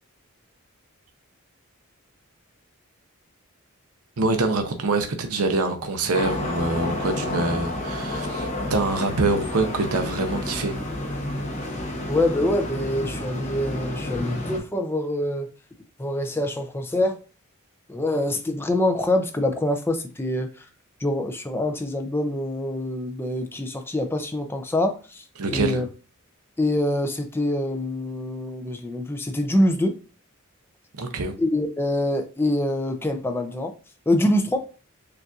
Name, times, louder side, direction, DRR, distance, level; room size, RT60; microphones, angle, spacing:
voice 1, 4.2-10.8 25.4-25.8 31.0-31.3, right 3 dB, 85° right, 0.6 m, -25 dB
sound 1, 6.1-14.6, left 1 dB, 30° left, 0.8 m, -30 dB
voice 2, 12.1-15.5 16.0-17.2 17.9-20.6 21.0-25.9 26.6-30.0 31.4-33.7 34.1-34.6, left 1 dB, 10° left, 0.4 m, -25 dB
6.6 x 2.5 x 2.4 m
head